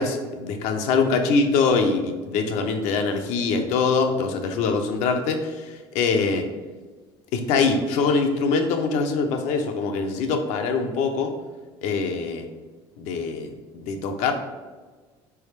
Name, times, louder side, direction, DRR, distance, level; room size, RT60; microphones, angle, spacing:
voice 1, 0.0-6.4 7.3-11.3 11.8-12.5 13.0-14.3, left 4 dB, 70° left, 5 dB, 0.6 m, -23 dB
3.9 x 3.4 x 3.2 m, 1.3 s
supercardioid pair, 95°, 12 cm